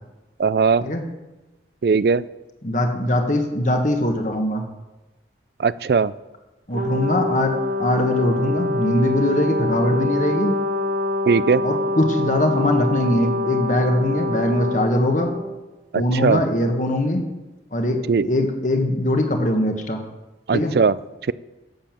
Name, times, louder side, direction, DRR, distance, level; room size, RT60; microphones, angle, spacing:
voice 1, 0.4-0.8 1.8-2.2 5.6-6.1 11.3-11.6 16.2-16.4 18.1-18.3 20.5-20.9, right 5 dB, 60° right, 18 dB, 0.4 m, -18 dB
voice 2, 2.6-4.6 6.7-10.6 11.6-15.3 15.9-17.3 17.7-20.0 20.5-20.7, left 1 dB, 45° left, 4 dB, 1.6 m, -21 dB
Brass instrument, 6.7-15.4, left 2 dB, 90° right, 2.1 m, -25 dB
11.0 x 7.6 x 7.5 m, 1.1 s
head